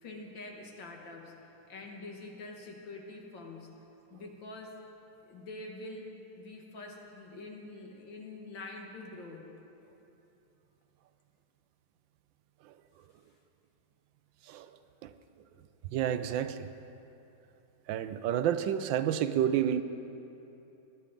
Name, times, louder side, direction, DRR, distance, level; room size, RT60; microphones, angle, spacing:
voice 1, 0.0-3.7 4.1-4.8 5.2-6.1 6.4-9.5, left 2 dB, 75° left, 1 dB, 2.3 m, -45 dB
voice 2, 15.9-16.7 17.9-19.8, right 10 dB, 80° right, 11 dB, 1.3 m, -30 dB
20.5 x 10.5 x 5.2 m, 3.0 s
omnidirectional pair, 2.1 m